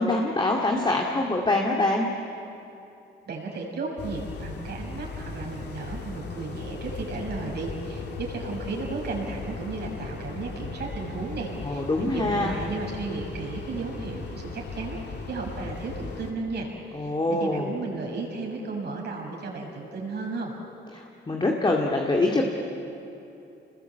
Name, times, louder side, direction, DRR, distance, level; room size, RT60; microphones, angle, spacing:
voice 1, 0.0-2.1 11.6-12.6 16.9-17.7 20.9-22.5, left 2 dB, 25° left, 0 dB, 2.2 m, -24 dB
voice 2, 3.2-20.6, right 3 dB, 55° right, 0 dB, 6.4 m, -34 dB
sound 1, 4.0-16.3, left 4 dB, 60° left, 3.0 m, -37 dB
26.5 x 21.0 x 8.0 m, 2.9 s
cardioid pair, 90°, 20 cm